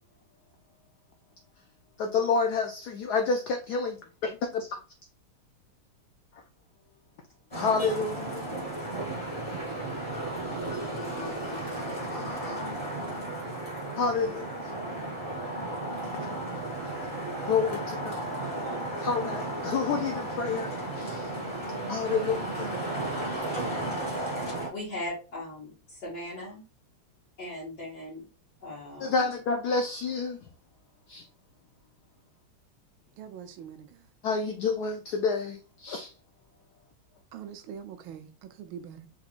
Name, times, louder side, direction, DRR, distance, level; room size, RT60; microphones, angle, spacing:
voice 1, 2.0-4.8 7.5-8.4 10.9-12.6 14.0-14.5 16.0-16.2 17.4-18.2 19.0-21.3 21.9-22.7 29.0-30.4 31.1-31.2 34.2-36.1, left 4 dB, 80° left, 0.9 m, -29 dB
Traffic noise roadway noise, 7.5-24.7, right 1 dB, 15° left, 2.3 m, -34 dB
voice 2, 24.4-26.6 27.4-28.2 28.6-29.3, left 1 dB, 50° left, 2.4 m, -39 dB
voice 3, 33.2-34.1 37.3-39.1, right 8 dB, 75° right, 1.3 m, -43 dB
4.9 x 3.7 x 2.4 m
omnidirectional pair, 2.3 m